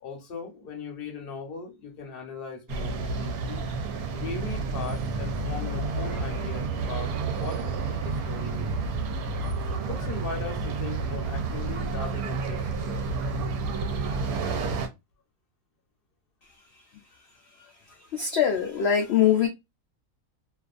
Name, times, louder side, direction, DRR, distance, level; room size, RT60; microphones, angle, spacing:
voice 1, 0.0-3.7 4.1-7.6 8.0-8.8 9.8-13.4 13.8-13.9, left 4 dB, 45° left, 0.8 m, -39 dB
sound 1, 2.7-14.9, right 4 dB, 75° right, 1.0 m, -30 dB
voice 2, 18.1-19.5, left 9 dB, 80° left, 0.5 m, -22 dB
2.6 x 2.4 x 2.4 m
omnidirectional pair, 1.6 m